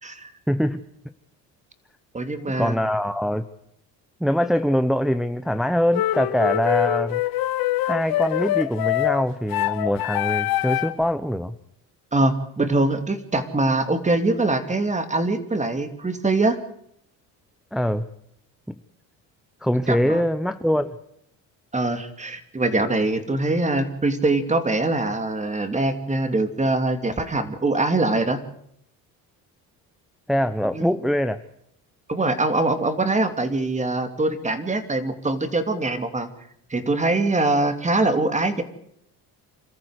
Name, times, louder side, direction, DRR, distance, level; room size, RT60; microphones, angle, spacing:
voice 1, 0.5-0.8 2.6-3.4 4.2-7.2 7.8-11.5 17.7-18.0 18.7-18.8 19.6-21.0 30.3-31.4, equal, ahead, 10 dB, 0.8 m, -23 dB
voice 2, 2.1-2.8 12.1-16.6 19.9-20.2 21.7-28.4 30.7-30.9 32.1-36.3 36.7-38.6, right 2 dB, 20° right, 9 dB, 2.7 m, -23 dB
sound 1, 5.9-11.0, left 15 dB, 70° left, 1.0 m, -24 dB
27.0 x 14.0 x 8.1 m, 0.73 s
cardioid pair, 105°, 37 cm